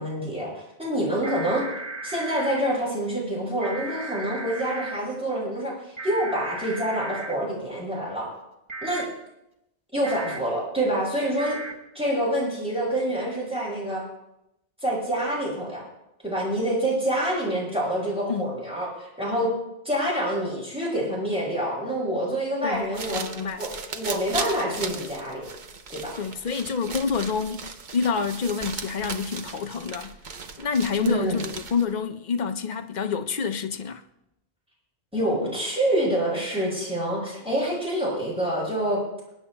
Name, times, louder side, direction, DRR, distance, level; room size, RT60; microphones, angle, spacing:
voice 1, 0.0-1.6 2.0-8.3 8.8-9.0 9.9-11.6 11.9-14.0 14.8-15.8 16.2-19.5 19.8-23.3 23.6-25.5 25.9-26.1 31.0-31.4 35.1-39.0, right 1 dB, 5° right, 5.7 m, -27 dB
sound 1, 1.2-2.6 3.6-5.0 6.0-7.3 8.7-9.0 10.0-10.4 11.4-11.7, right 2 dB, 30° right, 1.2 m, -35 dB
voice 2, 22.6-23.6 26.2-30.1 30.6-31.4 31.7-34.0, left 5 dB, 50° left, 0.7 m, -28 dB
sound 2, 22.7-32.0, right 5 dB, 50° right, 0.8 m, -37 dB
27.0 x 10.0 x 2.2 m
omnidirectional pair, 1.1 m